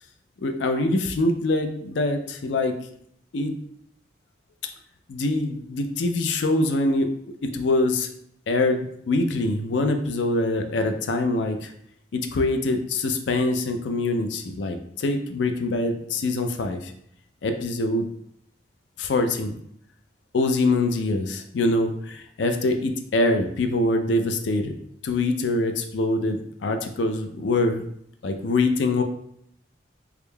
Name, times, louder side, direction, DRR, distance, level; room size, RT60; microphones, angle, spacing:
voice 1, 0.4-2.8 3.3-3.5 5.1-7.1 7.4-8.1 8.5-11.7 12.1-16.9 17.4-18.1 19.0-19.5 20.3-24.7 25.0-27.9 28.2-29.0, left 2 dB, 80° left, 6 dB, 0.4 m, -24 dB
3.5 x 3.4 x 2.2 m, 0.70 s
head